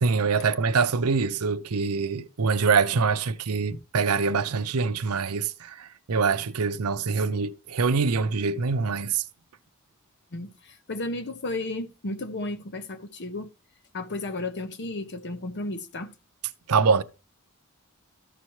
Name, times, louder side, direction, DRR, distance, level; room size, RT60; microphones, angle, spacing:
voice 1, 0.0-9.2 16.7-17.0, right 5 dB, 80° right, 0.6 m, -24 dB
voice 2, 10.3-13.5 13.9-16.1, left 2 dB, 55° left, 0.9 m, -33 dB
13.5 x 5.7 x 3.1 m
head